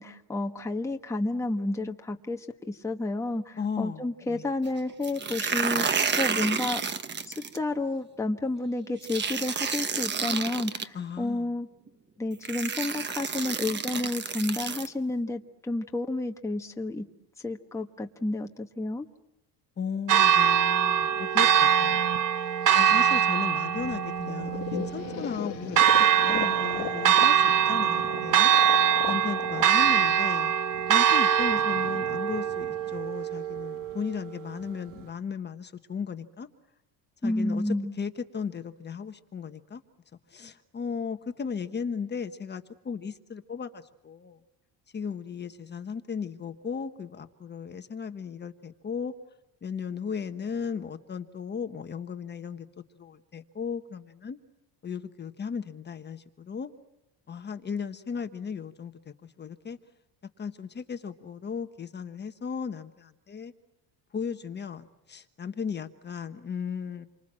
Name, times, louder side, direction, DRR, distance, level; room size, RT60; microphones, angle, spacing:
voice 1, 0.0-5.9 6.1-6.8 7.2-11.7 12.2-17.1 17.4-19.1 37.2-37.9, left 2 dB, 5° left, 3 dB, 1.2 m, -31 dB
voice 2, 3.6-4.5 10.9-11.5 19.8-22.1 22.7-28.5 29.1-30.5 30.9-36.5 37.2-39.8 40.3-44.4 44.9-49.1 49.6-52.7 53.0-54.4 54.8-56.7 57.3-59.8 60.4-63.5 64.1-67.1, left 6 dB, 25° left, 8 dB, 1.3 m, -36 dB
sound 1, 5.0-7.6 9.0-10.8 11.9-12.0 12.4-14.9, right 6 dB, 25° right, 1.2 m, -30 dB
Church bell, 20.1-34.1, right 9 dB, 50° right, 1.5 m, -23 dB
sound 2, 24.3-31.1, left 17 dB, 70° left, 1.2 m, -38 dB
28.5 x 25.0 x 7.6 m, 0.92 s
cardioid pair, 150°, 41 cm